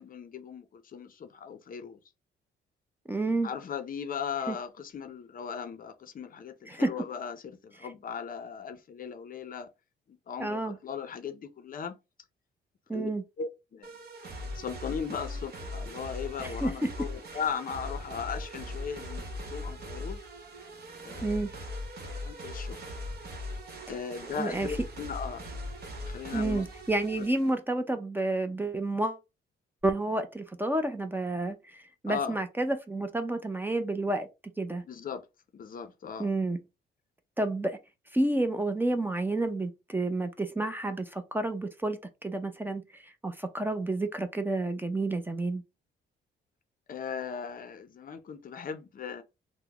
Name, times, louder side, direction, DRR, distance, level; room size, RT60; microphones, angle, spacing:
voice 1, 0.0-2.0 3.4-9.7 10.3-11.9 12.9-13.1 13.4-13.9 14.5-20.2 21.0-21.4 22.0-22.8 23.9-25.5 26.1-26.6 32.1-32.4 34.9-35.2 35.5-36.3 46.9-49.2, left 7 dB, 45° left, 0.5 m, -38 dB
voice 2, 3.1-3.5 4.5-4.6 6.7-6.9 10.4-10.8 12.9-13.2 16.4-16.7 21.2-21.5 24.4-24.7 26.3-29.2 29.8-34.3 34.6-34.8 36.2-36.6 37.4-37.8 38.1-45.6, right 2 dB, 10° right, 0.5 m, -30 dB
sound 1, 13.8-27.6, left 1 dB, 55° right, 1.1 m, -40 dB
3.5 x 2.0 x 2.9 m
cardioid pair, 90°, 20 cm